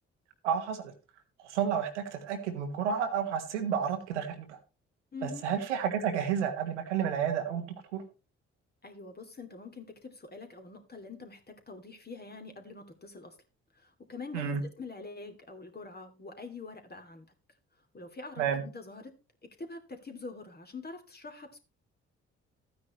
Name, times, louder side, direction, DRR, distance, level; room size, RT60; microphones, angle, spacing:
voice 1, 0.4-0.9 1.4-4.6 5.2-8.0 14.3-14.6 18.4-18.6, right 8 dB, 80° right, 6 dB, 1.4 m, -31 dB
voice 2, 5.1-5.5 8.8-13.4 13.7-17.3 17.9-19.1 19.4-21.6, left 3 dB, 25° left, 5 dB, 2.6 m, -45 dB
14.0 x 9.5 x 3.0 m, 0.31 s
figure-of-eight pair, 40°, 35 cm